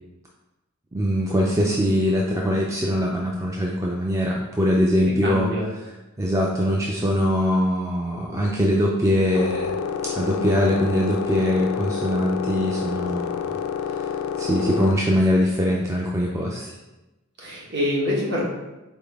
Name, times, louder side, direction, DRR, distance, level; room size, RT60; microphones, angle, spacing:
voice 1, 0.9-5.5 6.2-9.8 10.2-13.5 13.8-14.1 14.4-16.7, equal, 15° right, -2 dB, 0.3 m, -22 dB
voice 2, 5.0-5.6 17.4-18.5, left 1 dB, 50° right, -5 dB, 1.3 m, -25 dB
sound 1, 9.3-14.9, left 7 dB, 80° left, 0.3 m, -28 dB
4.1 x 3.5 x 3.5 m, 1.0 s
head